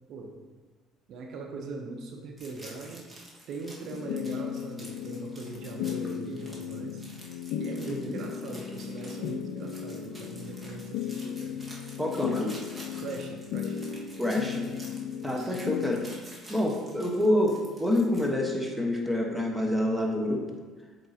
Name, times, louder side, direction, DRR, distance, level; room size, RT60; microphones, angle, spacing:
voice 1, 0.1-0.4 1.1-3.1 3.5-7.0 7.5-11.6 12.9-13.9 15.2-15.6, right 3 dB, 65° right, 2 dB, 0.8 m, -40 dB
sound 1, 2.4-18.3, right 1 dB, 20° right, 1.6 m, -50 dB
sound 2, 3.9-16.2, left 8 dB, 75° left, 0.3 m, -36 dB
voice 2, 7.9-8.2 12.0-12.6 14.2-14.7 15.2-16.0 16.5-20.5, left 1 dB, 5° right, 0 dB, 1.3 m, -27 dB
7.8 x 4.6 x 2.8 m, 1.4 s
supercardioid pair, 75°, 0 cm